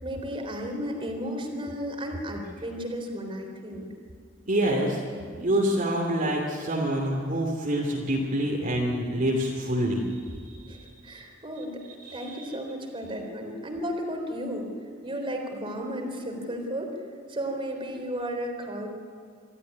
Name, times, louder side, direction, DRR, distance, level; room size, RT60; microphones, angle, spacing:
voice 1, 0.0-3.9 10.7-11.8 12.1-14.7 15.0-17.0 17.3-18.9, equal, 25° right, 2 dB, 3.8 m, -34 dB
voice 2, 4.5-5.0 5.4-11.2 12.0-12.5, right 1 dB, 45° right, -2 dB, 2.9 m, -27 dB
25.5 x 14.0 x 9.6 m, 2.2 s
head